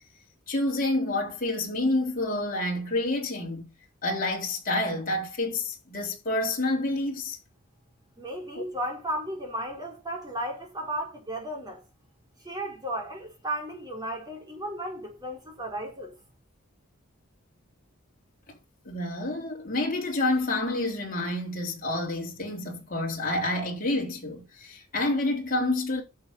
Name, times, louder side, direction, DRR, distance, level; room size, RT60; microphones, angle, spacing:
voice 1, 0.5-3.7 4.0-7.4 8.5-8.6 18.8-26.0, left 2 dB, 45° left, 3.8 m, -28 dB
voice 2, 8.2-11.8 12.4-16.1, right 1 dB, 20° right, 4.9 m, -34 dB
10.5 x 7.1 x 5.6 m
head